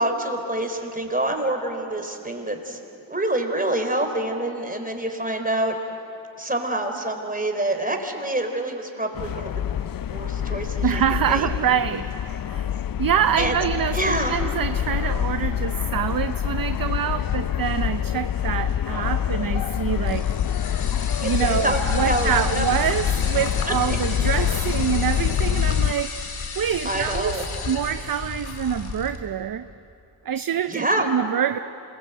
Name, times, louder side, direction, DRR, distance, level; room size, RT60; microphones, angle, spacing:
voice 1, 0.0-2.8 3.1-5.7 6.4-9.5 10.1-10.9 11.3-11.5 13.4-13.6 13.9-14.4 21.2-21.3 21.6-22.6 23.7-24.0 26.8-27.5 30.7-31.1, right 1 dB, 20° right, 4 dB, 4.2 m, -26 dB
sound 1, 9.2-25.9, left 10 dB, 50° left, 0.6 m, -26 dB
voice 2, 10.8-12.7 13.0-20.2 21.2-26.3 26.6-27.3 27.6-29.7 30.2-31.6, right 9 dB, 45° right, 11 dB, 0.7 m, -25 dB
sound 2, 20.1-29.2, left 4 dB, 85° left, 2.8 m, -33 dB
26.5 x 21.5 x 8.2 m, 2.8 s
supercardioid pair, 45°, 47 cm